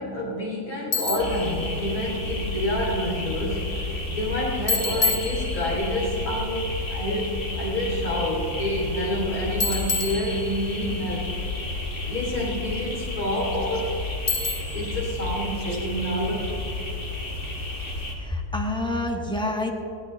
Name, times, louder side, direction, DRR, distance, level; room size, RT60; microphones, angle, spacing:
voice 1, 0.0-11.3 12.1-14.0 14.7-16.6, equal, 70° left, -4 dB, 3.9 m, -28 dB
Bicycle, 0.9-1.4 4.7-5.9 9.6-10.9 14.3-14.9, left 4 dB, 30° left, 1.5 m, -27 dB
sound 1, 1.2-18.1, left 2 dB, 50° left, 2.3 m, -31 dB
voice 2, 18.2-19.7, left 2 dB, 5° left, 1 dB, 1.3 m, -27 dB
20.0 x 17.0 x 3.3 m, 2.7 s
omnidirectional pair, 1.6 m